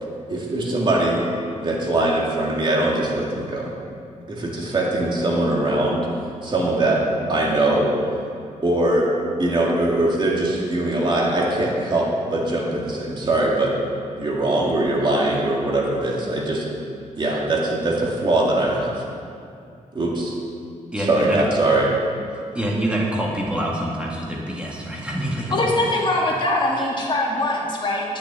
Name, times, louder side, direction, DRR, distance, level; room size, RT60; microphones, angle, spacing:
voice 1, 0.3-1.2 1.6-3.7 4.3-6.1 6.4-7.0 7.3-7.9 8.6-9.1 9.4-13.7 14.2-16.6 17.2-19.0 19.9-20.3 21.0-21.9, right 2 dB, 35° right, -3 dB, 2.4 m, -21 dB
voice 2, 20.9-21.4 22.5-25.7, right 1 dB, 10° right, -4 dB, 1.8 m, -26 dB
voice 3, 25.5-28.2, left 1 dB, 40° left, -3 dB, 2.1 m, -22 dB
10.0 x 7.2 x 9.4 m, 2.4 s
wide cardioid pair, 130°, 13 cm